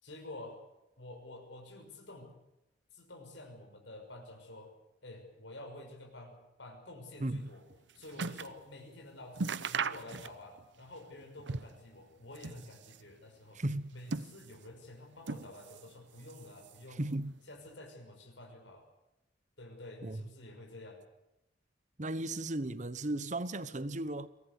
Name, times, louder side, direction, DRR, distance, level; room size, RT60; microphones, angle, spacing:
voice 1, 0.0-0.6 1.0-2.3 2.9-4.7 5.0-7.6 7.9-13.6 13.9-17.0 17.5-18.9 19.6-21.0, left 2 dB, 85° left, 6.0 m, -49 dB
sound 1, 7.4-8.6 9.0-9.1 9.3-10.6 10.9-11.9 12.2-13.1 13.7-14.7 15.2-15.9 16.2-17.0 17.7-17.8, right 4 dB, 75° right, 0.8 m, -39 dB
voice 2, 13.5-13.9 17.0-17.3 20.0-20.2 22.0-24.3, right 1 dB, 40° right, 1.1 m, -35 dB
23.0 x 18.5 x 8.3 m
head